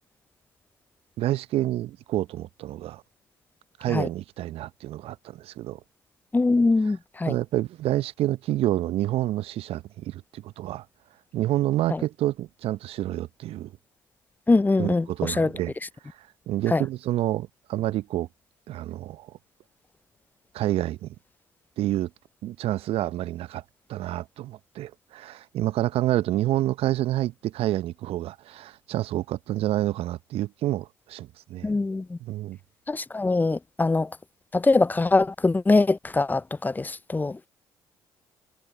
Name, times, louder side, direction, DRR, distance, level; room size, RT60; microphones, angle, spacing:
voice 1, 1.2-3.0 3.8-5.8 7.3-10.9 11.3-13.7 14.8-15.7 16.0-18.3 18.7-19.4 20.5-21.1 21.8-22.1 22.4-23.6 23.9-31.7 32.2-32.6, right 14 dB, 60° right, 0.8 m, -28 dB
voice 2, 6.3-7.4 11.9-12.0 14.5-15.5 16.7-16.8 31.6-32.2 32.9-34.2 34.5-37.4, left 3 dB, 15° left, 0.5 m, -23 dB
hypercardioid pair, 50°, 11 cm